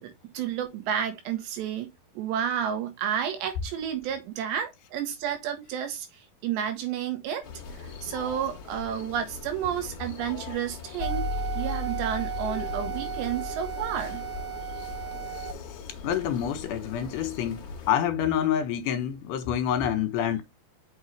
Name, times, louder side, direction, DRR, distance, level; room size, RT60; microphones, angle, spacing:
voice 1, 0.0-6.1 6.4-7.5 7.8-11.3 11.6-14.3, right 9 dB, 80° right, 3.6 m, -31 dB
sound 1, 7.4-17.9, left 5 dB, 45° left, 2.3 m, -41 dB
sound 2, 11.0-15.5, right 3 dB, 35° right, 1.0 m, -33 dB
voice 2, 16.0-17.6 17.9-20.4, left 9 dB, 80° left, 3.4 m, -27 dB
6.4 x 6.3 x 3.3 m
omnidirectional pair, 4.9 m